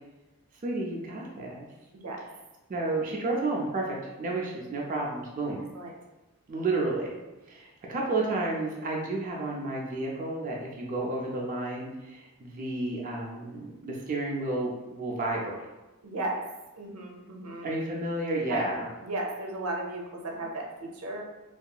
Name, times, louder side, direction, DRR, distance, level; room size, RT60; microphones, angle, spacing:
voice 1, 0.6-1.7 2.7-5.6 6.5-7.1 7.5-15.7 17.6-18.9, right 2 dB, 35° right, -2 dB, 0.4 m, -31 dB
voice 2, 1.9-2.3 5.7-5.9 16.0-16.4 16.8-17.7 18.5-21.2, right 2 dB, 90° right, 0 dB, 0.5 m, -35 dB
2.7 x 2.4 x 2.2 m, 1.1 s
head